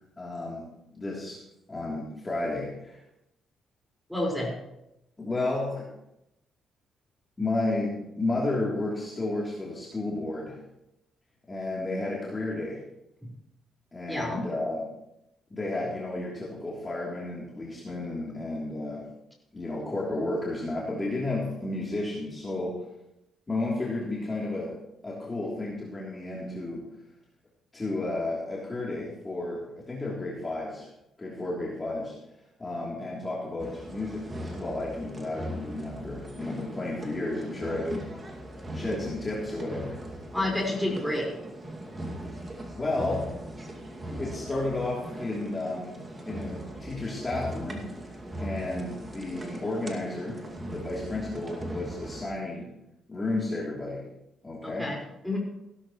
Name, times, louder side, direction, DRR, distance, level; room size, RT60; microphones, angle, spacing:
voice 1, 0.2-0.6 0.9-1.4 1.7-3.0 5.2-5.9 7.4-10.6 11.5-12.8 13.9-15.0 15.5-19.0 19.5-22.9 23.5-24.7 25.0-26.9 27.7-30.9 31.2-32.1 32.6-38.4 38.7-40.1 42.3-43.3 44.2-45.9 46.2-47.9 48.4-50.4 50.7-52.7 53.1-54.0 54.4-54.9, left 2 dB, 25° left, -5 dB, 3.3 m, -32 dB
voice 2, 4.1-4.5 13.2-13.3 14.1-14.4 40.3-41.3 54.6-55.0 55.2-55.4, left 1 dB, ahead, -2 dB, 5.0 m, -29 dB
sound 1, 33.6-52.2, right 1 dB, 25° right, 2.3 m, -39 dB
16.5 x 12.5 x 3.2 m, 0.86 s
cardioid pair, 90°, 0 cm